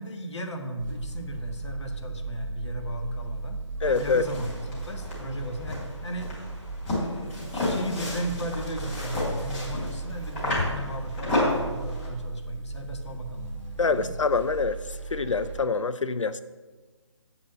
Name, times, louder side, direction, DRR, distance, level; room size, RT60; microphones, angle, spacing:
voice 1, 0.0-6.3 6.9-14.1, equal, 65° left, 4 dB, 1.6 m, -36 dB
sound 1, 0.8-15.7, right 3 dB, 25° right, 1.9 m, -37 dB
voice 2, 3.8-4.3 13.8-16.4, left 4 dB, 80° left, 13 dB, 0.5 m, -25 dB
sound 2, 3.8-12.1, left 2 dB, 20° left, 3.3 m, -32 dB
8.1 x 6.0 x 7.5 m, 1.3 s
figure-of-eight pair, 150°, 16 cm